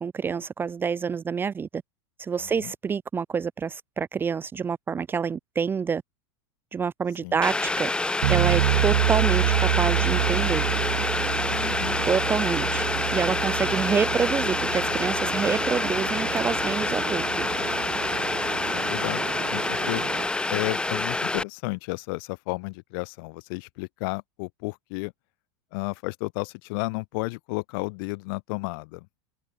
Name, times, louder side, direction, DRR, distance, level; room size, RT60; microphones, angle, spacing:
voice 1, 0.0-1.8 2.2-6.0 6.7-7.9 8.3-10.6 12.1-12.8 13.1-17.2, right 6 dB, 15° right, 0.8 m, -27 dB
Boiling, 7.4-21.4, left 2 dB, 5° left, 3.0 m, -27 dB
sound 1, 8.2-19.1, right 14 dB, 85° right, 1.0 m, -28 dB
sound 2, 10.1-20.3, right 19 dB, 40° right, 6.2 m, -36 dB
voice 2, 11.5-12.0 18.7-19.2 19.5-20.1 20.5-25.1 25.7-29.0, left 28 dB, 55° left, 3.1 m, -32 dB
open air
supercardioid pair, 145°, 14 cm